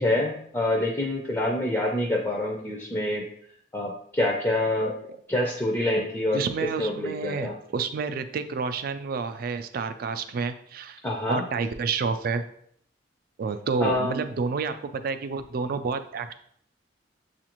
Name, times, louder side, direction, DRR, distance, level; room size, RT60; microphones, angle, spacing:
voice 1, 0.0-3.3 3.7-4.9 5.3-6.4 6.8-7.6 11.0-11.4 13.8-14.2, left 1 dB, 15° left, -1 dB, 0.5 m, -26 dB
voice 2, 6.3-11.0 11.3-12.4 13.4-16.3, right 5 dB, 55° right, 10 dB, 0.3 m, -29 dB
6.9 x 2.5 x 2.9 m, 0.67 s
head